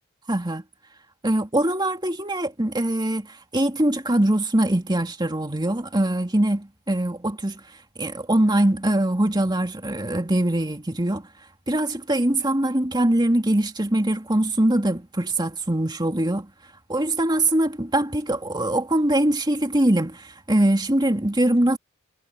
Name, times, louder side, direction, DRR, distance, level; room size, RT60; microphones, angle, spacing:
voice 1, 0.3-0.6 1.2-7.6 8.0-11.2 11.7-16.5 16.9-21.8, right 1 dB, 20° right, 2.6 m, -22 dB
head